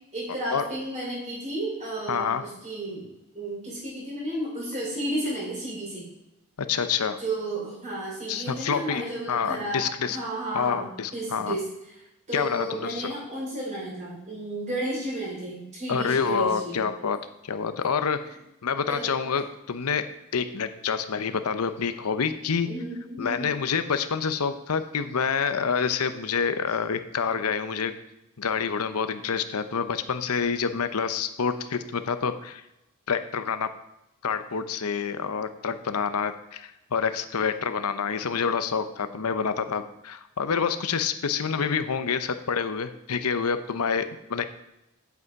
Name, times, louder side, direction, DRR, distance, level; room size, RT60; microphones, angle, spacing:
voice 1, 0.1-3.1 3.3-6.1 7.2-12.0 12.3-16.8 18.2-18.4 18.9-19.4 22.6-23.6 26.7-26.8, right 1 dB, 35° right, -4 dB, 4.0 m, -33 dB
voice 2, 2.1-2.5 6.6-7.2 8.3-10.2 10.5-11.6 12.3-13.1 15.9-17.2 17.4-18.2 18.6-22.7 23.2-27.9 28.4-32.6 33.1-33.7 34.2-44.4, left 6 dB, 85° left, 10 dB, 0.7 m, -27 dB
8.4 x 8.0 x 4.7 m, 0.89 s
head